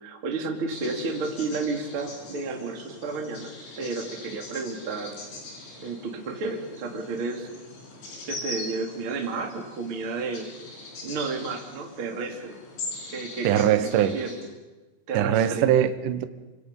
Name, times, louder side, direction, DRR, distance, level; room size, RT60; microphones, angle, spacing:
voice 1, 0.0-3.5 3.8-5.2 5.8-7.5 8.3-10.5 11.0-12.6 13.1-13.7 13.9-14.4 15.1-15.6, right 4 dB, 35° right, 2.7 m, -31 dB
sound 1, 0.7-14.4, left 2 dB, 75° left, 7.5 m, -42 dB
voice 2, 13.4-14.2 15.1-16.3, right 10 dB, 80° right, 1.9 m, -22 dB
27.5 x 25.5 x 5.5 m
omnidirectional pair, 5.4 m